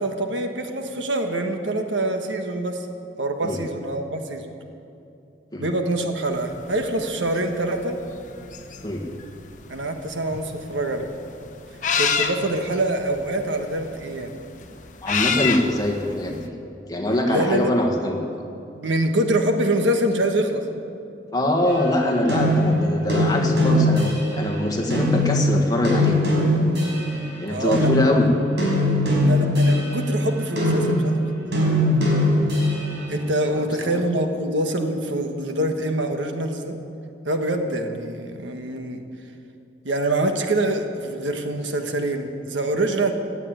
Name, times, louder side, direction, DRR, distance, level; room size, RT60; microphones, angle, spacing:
voice 1, 0.0-2.9 3.2-4.5 5.6-8.0 9.7-11.1 12.0-14.3 17.3-17.7 18.7-20.6 27.5-27.9 29.2-31.3 33.1-36.8 37.2-39.0 39.8-43.1, right 1 dB, 90° right, 5 dB, 1.5 m, -25 dB
sound 1, 6.4-16.5, left 6 dB, 45° left, 1.0 m, -28 dB
voice 2, 15.0-16.5 16.9-18.2 21.3-26.2 27.4-28.3 33.5-33.9, left 1 dB, 20° left, 0 dB, 1.7 m, -23 dB
sound 2, 21.7-24.5 24.9-27.3 27.7-33.0, left 1 dB, 70° right, 5.1 m, -21 dB
16.5 x 9.0 x 9.2 m, 2.7 s
head